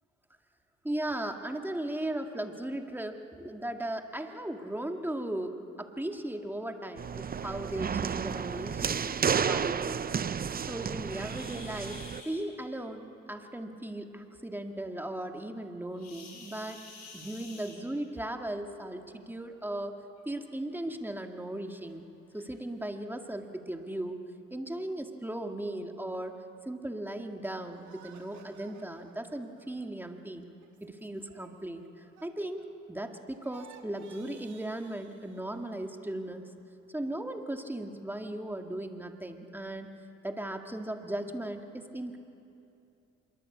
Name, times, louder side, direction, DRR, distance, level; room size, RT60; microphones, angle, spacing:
voice 1, 0.8-10.1 10.6-16.8 17.1-20.0 20.3-22.1 22.3-24.2 24.5-26.4 26.7-30.5 30.8-36.4 36.9-39.9 40.2-42.2, right 1 dB, 5° right, 4 dB, 2.0 m, -37 dB
sound 1, 7.0-12.2, right 7 dB, 30° right, 0.6 m, -32 dB
sound 2, 11.2-12.4 15.9-18.2 19.4-19.6 20.2-20.3 20.8-20.9 21.7-21.8 22.3-22.5, left 4 dB, 60° left, 6.9 m, -49 dB
sound 3, 27.7-33.1 33.4-35.9, right 7 dB, 70° right, 2.4 m, -57 dB
25.5 x 23.0 x 8.4 m, 2.7 s
cardioid pair, 90°, 30 cm